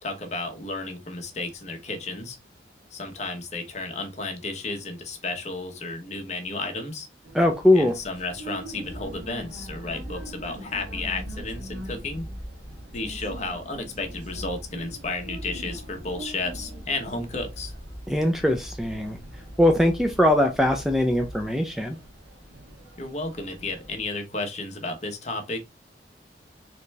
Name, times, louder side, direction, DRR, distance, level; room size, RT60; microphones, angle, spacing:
voice 1, 0.0-2.4 2.9-7.1 7.7-12.2 12.9-17.8 23.0-25.6, left 2 dB, 40° left, 1.1 m, -33 dB
sound 1, 7.2-24.0, right 1 dB, 85° right, 1.4 m, -45 dB
voice 2, 7.3-7.9 18.1-19.2 19.6-22.0, left 1 dB, ahead, 0.4 m, -21 dB
sound 2, 8.8-21.5, equal, 15° left, 1.1 m, -41 dB
4.1 x 3.2 x 3.3 m
head